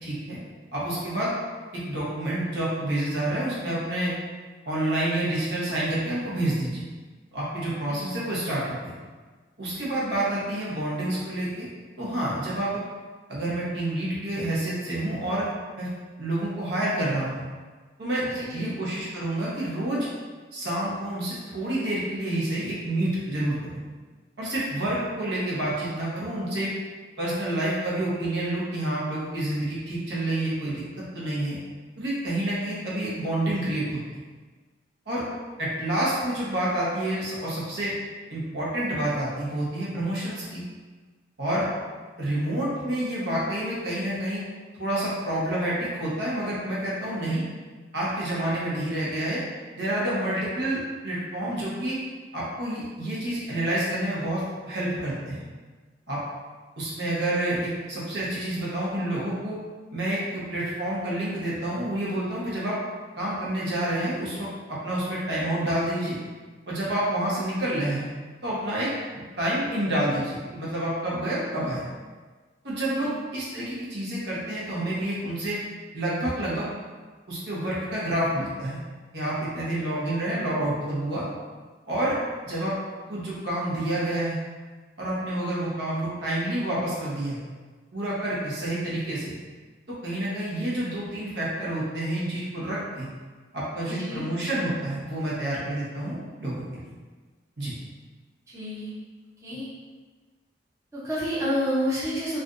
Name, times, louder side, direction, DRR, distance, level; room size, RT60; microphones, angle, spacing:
voice 1, 0.0-0.4 0.7-1.3 1.7-4.1 4.6-6.8 7.3-8.9 9.6-11.7 12.0-12.8 13.3-15.5 15.8-15.9 16.2-17.4 18.0-20.1 20.5-23.8 24.4-26.7 27.2-31.6 32.0-34.0 35.1-35.2 35.6-37.9 38.3-40.6 41.4-41.7 42.2-44.4 44.8-47.4 47.9-49.4 49.8-52.0 52.3-55.4 56.1-56.2 56.8-59.6 59.9-62.8 63.2-66.1 66.7-68.1 68.4-71.8 72.6-75.6 75.9-76.6 77.3-78.8 79.1-81.2 81.9-82.2 82.4-82.7 83.1-84.4 85.0-87.4 87.9-89.3 89.9-93.1 93.5-96.6 97.6-97.7, right 1 dB, 70° right, -7 dB, 1.0 m, -28 dB
voice 2, 18.3-18.7 73.0-73.1 93.8-94.2 98.5-98.9 99.4-99.7 100.9-102.4, equal, 15° right, -9 dB, 0.7 m, -29 dB
3.2 x 2.5 x 2.5 m, 1.4 s
head